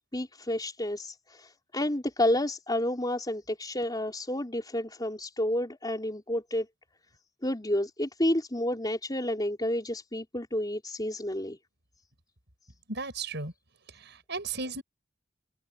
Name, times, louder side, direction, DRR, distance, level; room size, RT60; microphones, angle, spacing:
voice 1, 0.1-6.7 7.4-11.6, left 1 dB, 20° left, 4.6 m, -30 dB
voice 2, 12.9-13.5 13.9-14.8, right 4 dB, 60° right, 7.7 m, -35 dB
head